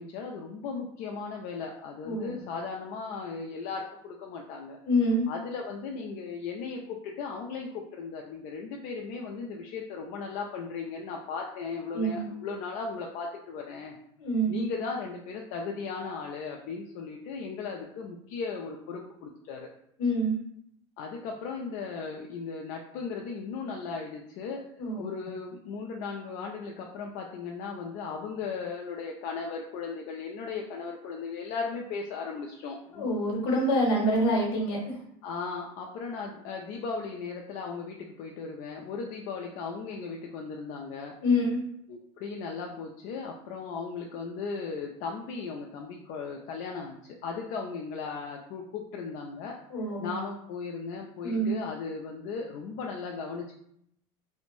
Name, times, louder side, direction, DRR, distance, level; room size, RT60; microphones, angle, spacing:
voice 1, 0.0-4.8 5.3-13.9 14.5-19.7 21.0-24.6 25.0-33.1 35.2-41.1 41.9-49.6 50.0-53.6, left 5 dB, 60° left, 1 dB, 0.4 m, -37 dB
voice 2, 2.0-2.4 4.8-5.3 11.9-12.2 14.2-14.6 20.0-20.4 24.8-25.3 32.9-34.9 41.2-41.6 49.7-50.1 51.2-51.5, equal, 75° left, -2 dB, 0.9 m, -26 dB
2.5 x 2.1 x 3.0 m, 0.71 s
supercardioid pair, 120°, 15 cm